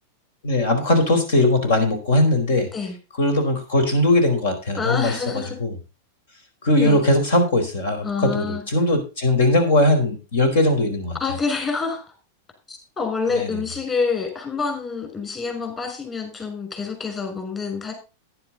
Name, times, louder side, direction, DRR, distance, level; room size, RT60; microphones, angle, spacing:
voice 1, 0.4-2.7 3.2-5.7 6.6-11.1 13.3-13.5, left 1 dB, 75° left, 7 dB, 4.5 m, -20 dB
voice 2, 4.8-5.6 6.8-7.0 8.0-8.6 11.2-12.0 12.7-17.9, left 5 dB, 25° left, 5 dB, 5.9 m, -27 dB
10.5 x 10.5 x 4.0 m, 0.30 s
hypercardioid pair, 110°, 0 cm